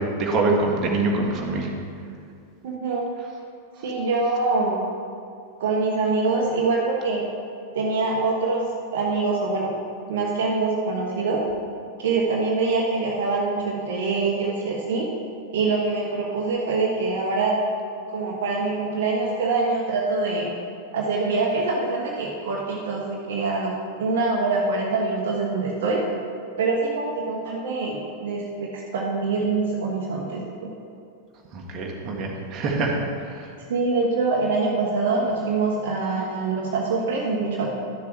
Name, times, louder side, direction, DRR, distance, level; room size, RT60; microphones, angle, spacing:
voice 1, 0.0-1.7 31.5-33.5, right 2 dB, 30° right, -1 dB, 1.6 m, -25 dB
voice 2, 2.6-3.1 3.8-4.9 5.6-7.3 7.7-9.7 10.1-11.4 12.0-15.1 15.5-17.6 18.1-20.5 20.9-26.0 26.6-30.7 33.7-37.7, right 3 dB, 55° right, -2 dB, 1.2 m, -24 dB
12.0 x 7.0 x 4.7 m, 2.5 s
figure-of-eight pair, 90°, 0 cm